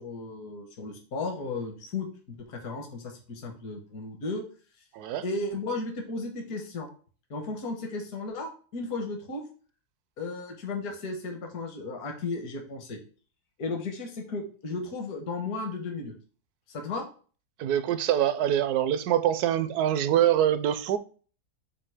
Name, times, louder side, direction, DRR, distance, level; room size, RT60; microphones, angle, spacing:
voice 1, 0.0-4.4 5.2-6.9 7.3-9.4 10.2-13.0 13.6-16.1 16.7-17.1, left 3 dB, 70° left, 1.6 m, -34 dB
voice 2, 4.9-5.2 17.6-21.0, right 11 dB, 75° right, 1.1 m, -24 dB
7.5 x 2.7 x 4.8 m
omnidirectional pair, 1.7 m